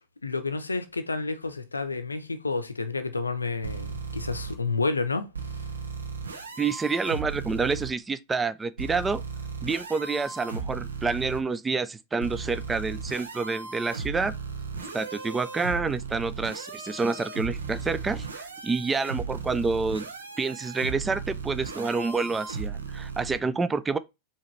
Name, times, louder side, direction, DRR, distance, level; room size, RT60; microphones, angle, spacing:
voice 1, 0.2-5.3, left 3 dB, 80° left, 0.6 m, -30 dB
sound 1, 3.6-4.5 5.3-7.9 8.8-11.4 12.2-23.4, right 5 dB, 75° right, 0.7 m, -36 dB
voice 2, 6.6-9.2 9.6-14.4 14.9-20.1 20.4-24.0, right 4 dB, 15° right, 0.4 m, -28 dB
4.8 x 2.9 x 3.1 m
figure-of-eight pair, 90°, 0 cm